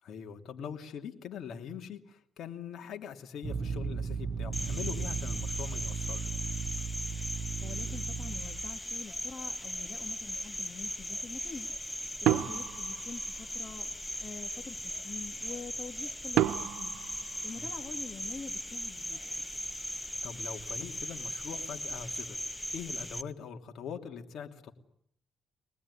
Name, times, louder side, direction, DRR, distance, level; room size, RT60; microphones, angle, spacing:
voice 1, 0.0-6.4 12.3-12.4 17.6-17.7 20.2-22.4 22.7-24.7, left 7 dB, 70° left, 4 dB, 2.9 m, -43 dB
sound 1, 3.4-8.8, right 5 dB, 60° right, 1.2 m, -36 dB
Cricket, 4.5-23.2, left 1 dB, 10° left, 1.3 m, -38 dB
voice 2, 7.6-11.7 12.2-13.9 14.2-16.9 17.4-19.5, left 5 dB, 40° left, 4 dB, 2.5 m, -45 dB
sound 2, 12.3-13.8 16.4-18.2, right 12 dB, 85° right, 1.2 m, -31 dB
24.5 x 20.0 x 9.9 m, 0.69 s
cardioid pair, 90°, 0 cm